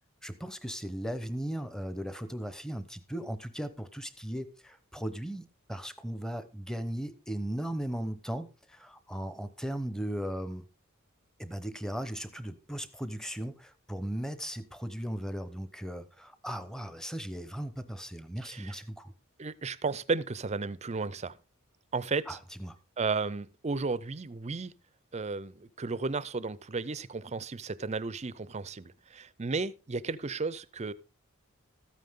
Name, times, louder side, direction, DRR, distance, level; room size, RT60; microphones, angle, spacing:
voice 1, 0.2-10.6 11.4-19.1 22.3-22.8, equal, 5° left, 0.9 m, -37 dB
voice 2, 18.4-18.8 19.4-21.3 21.9-22.4 23.0-24.7 25.1-30.9, right 4 dB, 30° right, 0.5 m, -34 dB
14.0 x 9.3 x 3.7 m
head